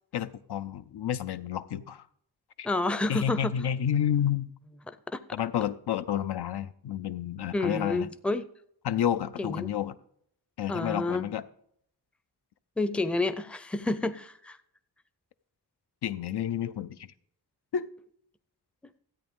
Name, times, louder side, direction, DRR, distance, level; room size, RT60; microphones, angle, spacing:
voice 1, 0.1-2.0 2.6-2.7 3.1-4.5 5.3-8.1 8.8-10.0 10.6-11.4 16.0-17.1 17.7-17.9, left 10 dB, 80° left, 0.6 m, -30 dB
voice 2, 2.6-3.5 5.1-5.2 7.5-8.5 9.4-9.7 10.7-11.3 12.8-14.6, left 2 dB, 5° left, 0.4 m, -29 dB
13.5 x 8.7 x 3.6 m
wide cardioid pair, 120°, 39 cm